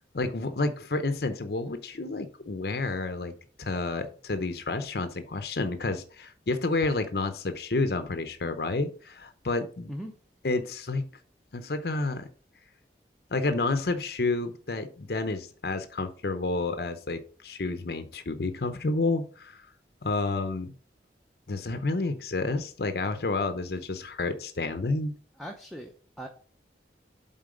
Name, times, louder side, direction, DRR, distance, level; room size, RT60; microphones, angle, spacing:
voice 1, 0.1-3.3 3.6-9.9 10.4-11.1 11.5-12.3 13.3-19.7 20.0-20.7 21.5-25.1, left 3 dB, 60° left, 9 dB, 0.7 m, -30 dB
voice 2, 25.4-26.3, equal, ahead, 1 dB, 0.7 m, -39 dB
7.7 x 4.0 x 5.0 m, 0.42 s
head